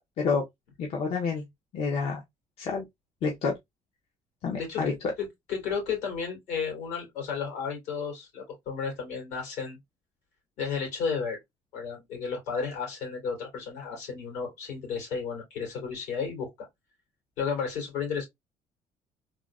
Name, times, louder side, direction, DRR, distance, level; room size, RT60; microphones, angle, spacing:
voice 1, 0.8-1.4 1.7-2.2 2.6-2.9 3.2-3.6 4.4-4.9, left 5 dB, 55° left, 0.6 m, -28 dB
voice 2, 4.5-9.8 10.6-11.4 11.7-16.7 17.4-18.3, left 6 dB, 75° left, 2.3 m, -33 dB
3.5 x 2.0 x 2.3 m
cardioid pair, 150°, 12 cm